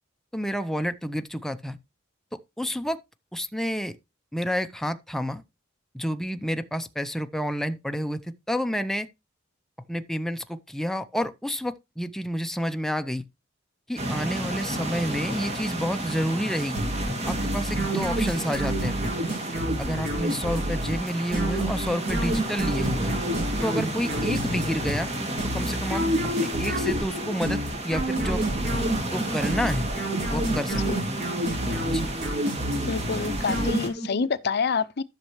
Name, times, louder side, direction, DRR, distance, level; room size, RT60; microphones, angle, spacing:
voice 1, 0.3-1.8 2.3-3.0 3.3-3.9 4.3-5.4 5.9-9.1 9.9-13.2 13.9-16.9 17.3-19.1 19.8-23.2 23.6-25.1 25.5-26.0 26.4-27.6 27.9-28.4 29.1-29.9 30.3-31.2 31.9-32.0, equal, ahead, 0.6 m, -29 dB
sound 1, 14.0-33.9, right 1 dB, 35° right, 2.4 m, -32 dB
sound 2, 16.7-34.2, right 1 dB, 55° right, 4.6 m, -29 dB
voice 2, 30.7-31.0 32.7-35.0, left 5 dB, 55° left, 0.6 m, -27 dB
13.5 x 6.5 x 3.1 m
head